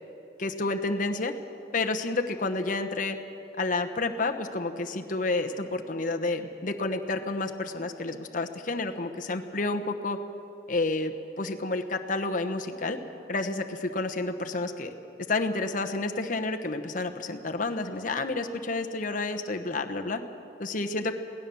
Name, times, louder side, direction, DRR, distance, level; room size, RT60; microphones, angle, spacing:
voice 1, 0.4-1.3 1.7-3.2 3.6-10.2 10.7-13.0 13.3-14.9 15.3-20.2 20.6-21.1, left 3 dB, 45° left, 5 dB, 1.0 m, -30 dB
22.5 x 17.5 x 7.0 m, 2.9 s
head